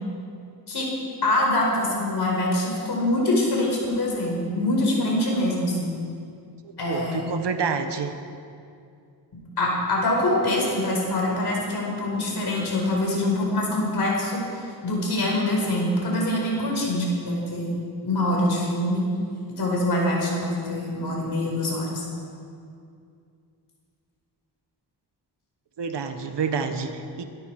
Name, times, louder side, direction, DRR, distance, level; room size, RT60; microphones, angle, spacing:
voice 1, 1.2-6.0 6.8-7.2 9.6-14.4 14.8-17.8 18.0-19.0 19.6-22.1, left 1 dB, 65° left, -2 dB, 5.0 m, -24 dB
voice 2, 6.6-8.1 25.8-27.2, right 5 dB, 70° right, 8 dB, 1.3 m, -28 dB
23.0 x 13.0 x 4.8 m, 2.4 s
wide cardioid pair, 115°, 42 cm